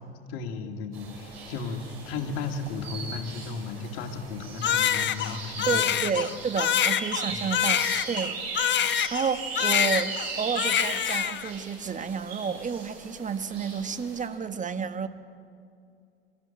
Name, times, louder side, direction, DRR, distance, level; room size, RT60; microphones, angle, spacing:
voice 1, 0.3-5.9 7.3-7.5, left 4 dB, 60° left, 5 dB, 2.4 m, -35 dB
sound 1, 0.9-14.3, right 4 dB, 75° right, 6.6 m, -38 dB
Crying sobbing, 4.6-9.3 9.6-10.3 10.6-11.5, left 10 dB, 35° left, 1.0 m, -25 dB
voice 2, 5.7-8.4 9.1-15.1, right 6 dB, 25° right, 9 dB, 1.4 m, -31 dB
25.0 x 13.5 x 9.0 m, 2.3 s
figure-of-eight pair, 70°, 31 cm